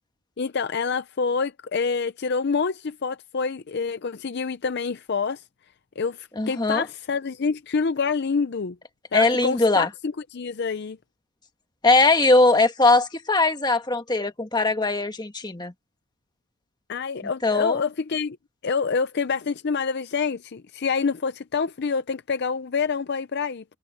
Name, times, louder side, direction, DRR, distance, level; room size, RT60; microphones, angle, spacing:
voice 1, 0.4-5.4 6.0-8.8 9.1-11.0 16.9-18.4 18.6-23.6, left 5 dB, 50° left, 0.5 m, -27 dB
voice 2, 6.4-6.9 9.1-9.9 11.8-15.7 17.4-17.8, left 2 dB, 20° left, 1.5 m, -20 dB
head